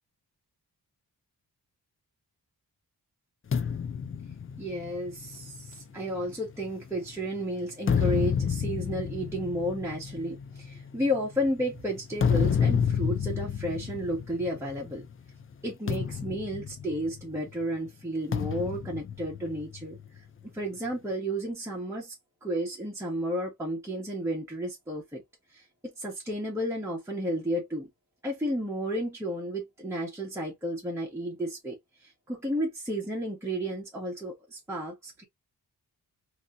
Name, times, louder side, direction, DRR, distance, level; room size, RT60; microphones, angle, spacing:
sound 1, 3.5-7.1 7.6-15.0 15.3-15.5 15.9-17.5 18.3-20.1, left 7 dB, 35° left, 0.4 m, -30 dB
voice 1, 4.6-15.1 15.6-20.2 20.5-22.1 22.4-25.2 25.5-27.9 28.2-35.2, equal, 5° right, 1.2 m, -32 dB
3.2 x 2.9 x 2.6 m
wide cardioid pair, 100°, 38 cm